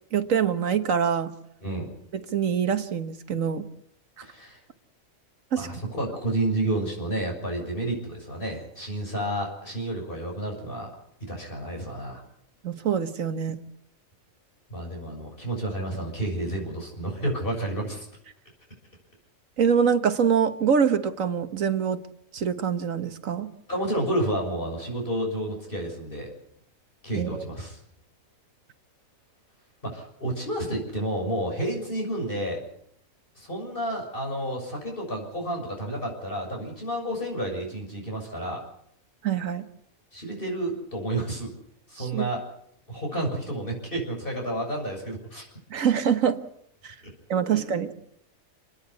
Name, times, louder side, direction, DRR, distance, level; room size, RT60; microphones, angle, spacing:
voice 1, 0.1-1.3 2.1-3.7 5.5-5.7 12.6-13.6 19.6-22.0 22.3-23.5 27.1-27.4 39.2-39.7 42.0-42.2 45.7-46.4 46.8-46.9 47.3-47.9, right 7 dB, 70° right, 9 dB, 1.6 m, -24 dB
voice 2, 4.2-4.6 5.6-10.9 11.3-12.2 14.7-18.1 23.7-26.3 27.0-27.8 29.8-32.6 33.4-38.6 40.1-41.5 41.9-42.4 42.9-45.5 47.5-47.6, right 1 dB, 40° left, 1 dB, 6.9 m, -30 dB
29.5 x 10.0 x 9.6 m, 0.74 s
omnidirectional pair, 1.4 m